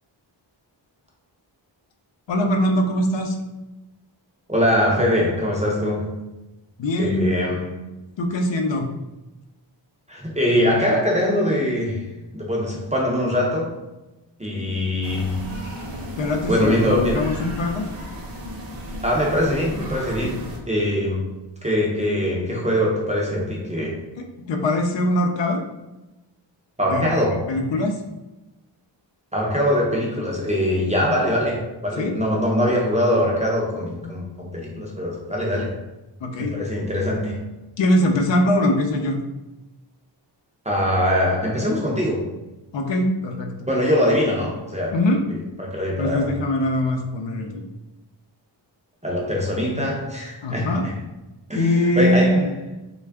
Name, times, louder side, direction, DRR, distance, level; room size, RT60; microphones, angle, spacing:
voice 1, 2.3-3.4 6.8-7.3 8.2-8.9 14.4-14.7 16.2-17.8 20.2-20.3 24.5-25.6 26.9-27.9 32.0-32.1 36.2-36.5 37.8-39.2 42.7-43.5 44.9-45.2 46.0-47.7 49.7-49.8 50.4-50.8 51.5-52.5, left 1 dB, 70° left, 3 dB, 0.6 m, -22 dB
voice 2, 4.5-6.2 7.0-7.8 10.1-13.7 14.4-15.4 16.5-17.3 19.0-21.3 21.6-24.0 26.8-27.6 29.3-35.8 36.4-37.4 40.7-42.3 43.6-44.9 45.6-46.4 49.0-50.9 51.5-52.5, left 1 dB, 15° right, -3 dB, 0.5 m, -22 dB
sound 1, 15.0-20.6, equal, 50° right, 0.8 m, -34 dB
3.4 x 2.3 x 3.3 m, 1.0 s
wide cardioid pair, 175°, 46 cm